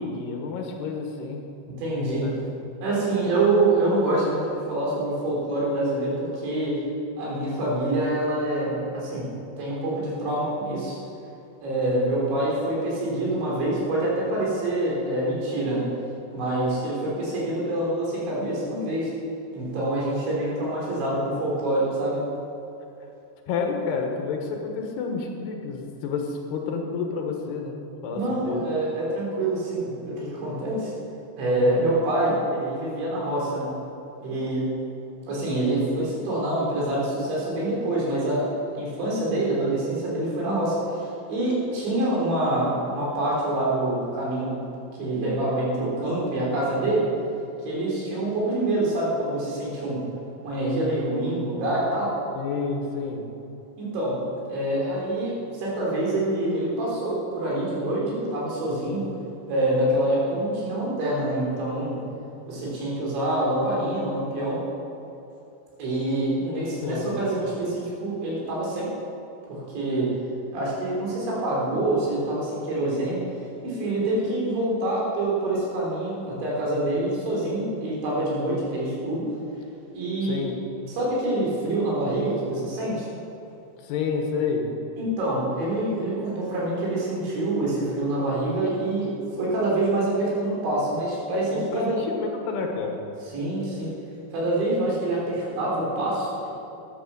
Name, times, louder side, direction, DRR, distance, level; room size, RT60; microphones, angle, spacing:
voice 1, 0.0-1.4 2.2-2.3 23.5-28.6 52.4-53.2 66.8-67.1 80.2-80.6 83.8-84.7 91.5-93.0, left 5 dB, 75° left, 2 dB, 3.3 m, -29 dB
voice 2, 1.8-2.3 2.8-6.8 7.2-9.3 9.6-11.0 11.6-15.9 16.3-19.1 19.5-22.2 28.1-30.9 31.4-33.7 34.2-34.6 35.3-38.4 38.8-44.6 45.0-47.1 47.6-50.0 50.4-52.1 53.8-54.2 54.5-59.1 59.5-62.0 62.5-64.6 65.8-68.9 69.5-70.1 70.5-73.2 73.6-79.2 79.9-80.4 80.9-83.1 85.0-89.1 89.4-92.0 93.3-93.9 94.3-96.5, right 1 dB, 90° right, -5 dB, 6.0 m, -26 dB
12.5 x 10.5 x 6.9 m, 2.8 s
omnidirectional pair, 5.0 m